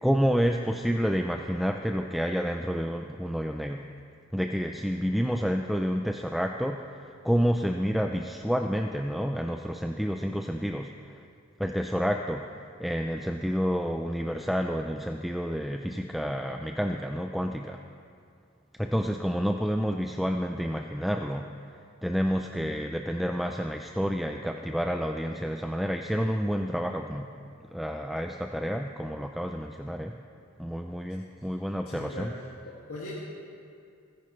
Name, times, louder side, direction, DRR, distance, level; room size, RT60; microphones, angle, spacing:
voice 1, 0.0-3.9 4.3-11.2 11.6-12.5 12.8-17.8 18.8-21.5 22.0-27.3 27.7-30.2 30.6-32.3, equal, ahead, 4 dB, 0.3 m, -29 dB
voice 2, 31.9-33.1, left 2 dB, 80° left, -6 dB, 2.1 m, -40 dB
29.5 x 10.5 x 3.1 m, 2.4 s
head